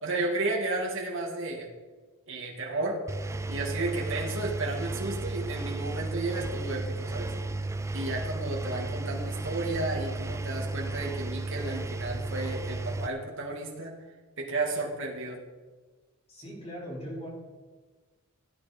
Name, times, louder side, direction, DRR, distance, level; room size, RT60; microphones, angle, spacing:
voice 1, 0.0-1.7 2.3-3.0 3.5-7.3 7.9-13.9 14.4-15.4, right 2 dB, 65° right, -1 dB, 2.4 m, -33 dB
Engine, 3.1-13.1, right 2 dB, 15° right, 0.4 m, -34 dB
voice 2, 16.3-17.3, equal, 30° left, -4 dB, 4.7 m, -39 dB
16.5 x 9.9 x 4.4 m, 1.3 s
head